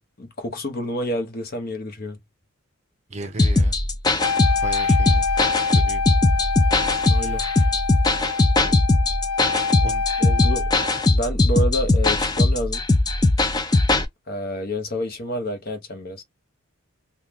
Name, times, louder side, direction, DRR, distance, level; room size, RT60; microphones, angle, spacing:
voice 1, 0.2-2.2 7.1-7.5 10.2-10.7 11.1-12.8 14.3-16.2, equal, 45° left, 0.8 m, -29 dB
voice 2, 3.1-3.8 4.6-5.2 5.7-6.0 7.1-7.4 9.8-10.0, right 2 dB, 30° right, 0.7 m, -35 dB
sound 1, 3.4-14.0, left 2 dB, 20° left, 0.4 m, -20 dB
Wind instrument woodwind instrument, 4.2-11.1, left 5 dB, 85° left, 0.4 m, -26 dB
3.6 x 2.3 x 2.9 m
head